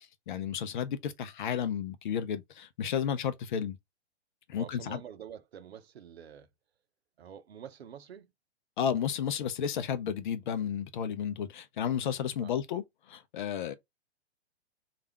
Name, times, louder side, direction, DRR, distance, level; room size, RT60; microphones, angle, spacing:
voice 1, 0.0-3.8 4.5-5.0 8.8-12.8 13.1-13.7, left 8 dB, 45° left, 0.6 m, -32 dB
voice 2, 4.6-6.5 7.2-8.3 12.4-12.6, right 9 dB, 65° right, 0.7 m, -47 dB
3.3 x 2.4 x 3.0 m
figure-of-eight pair, 115°, 34 cm